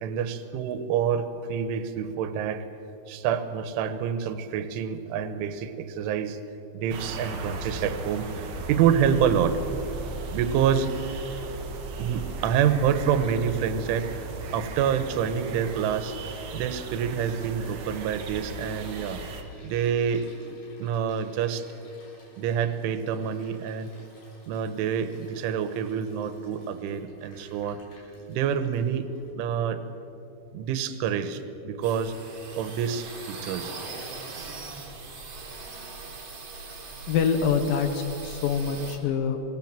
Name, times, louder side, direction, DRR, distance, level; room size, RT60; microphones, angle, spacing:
voice 1, 0.0-2.7 3.1-6.4 6.7-9.6 10.3-10.9 12.0-14.3 14.5-16.2 16.5-19.2 19.6-21.7 22.4-23.9 24.5-27.8 28.3-29.1 29.4-29.8 30.5-32.2 32.6-33.7, right 8 dB, 80° right, 10 dB, 3.5 m, -27 dB
sound 1, 6.9-19.4, right 3 dB, 60° right, 1.9 m, -37 dB
Toilet flush, 17.5-29.3, left 1 dB, 60° left, 7.1 m, -54 dB
sound 2, 31.8-39.0, right 3 dB, 35° right, 3.1 m, -40 dB
voice 2, 37.1-39.4, left 6 dB, 75° left, 7 dB, 2.0 m, -25 dB
26.0 x 17.5 x 7.5 m, 2.9 s
omnidirectional pair, 5.6 m